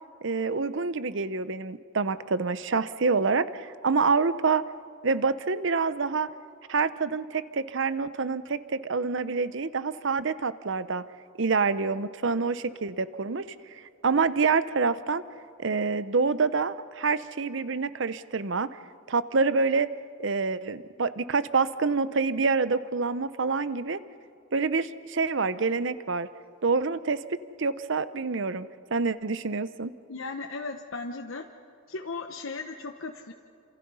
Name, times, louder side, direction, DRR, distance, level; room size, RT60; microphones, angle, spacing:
voice 1, 0.2-4.6 5.0-6.3 6.7-11.0 11.4-13.4 14.0-15.2 15.6-18.7 19.1-19.9 20.2-24.0 24.5-26.3 26.6-29.9, right 4 dB, 65° right, 14 dB, 0.8 m, -27 dB
voice 2, 30.1-31.5 31.9-33.3, left 3 dB, 75° left, 5 dB, 1.0 m, -36 dB
28.5 x 27.0 x 5.6 m, 2.5 s
head